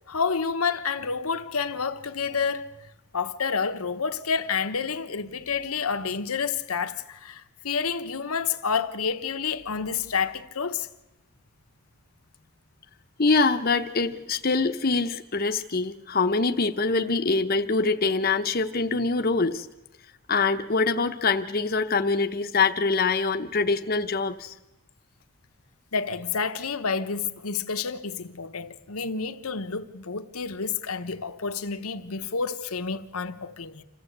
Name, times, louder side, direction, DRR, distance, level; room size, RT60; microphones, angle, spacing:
voice 1, 0.1-2.7 3.1-10.9 25.9-33.8, left 5 dB, 85° left, 1.1 m, -29 dB
voice 2, 13.2-19.7 20.3-24.5, left 4 dB, 45° left, 0.8 m, -24 dB
27.0 x 15.0 x 8.0 m
head